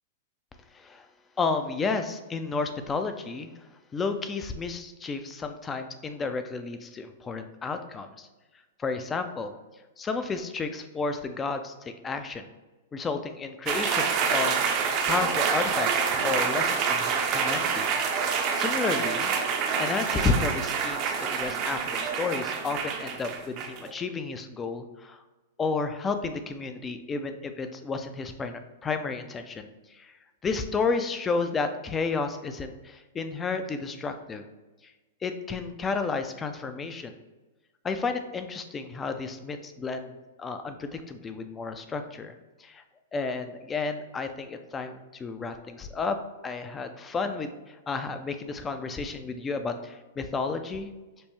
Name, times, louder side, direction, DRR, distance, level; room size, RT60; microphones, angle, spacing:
voice 1, 0.7-1.1 1.4-3.5 3.9-8.3 8.8-9.5 10.0-12.5 12.9-17.9 18.2-19.4 19.8-25.2 25.6-30.1 30.4-34.4 35.2-37.2 37.8-40.1 40.4-42.3 42.6-42.8 43.1-46.2 46.4-50.9, left 4 dB, 20° left, 8 dB, 0.4 m, -32 dB
sound 1, 13.7-23.9, right 6 dB, 40° right, 0.5 m, -27 dB
5.3 x 2.0 x 3.1 m, 1.2 s
hypercardioid pair, 120°, 0 cm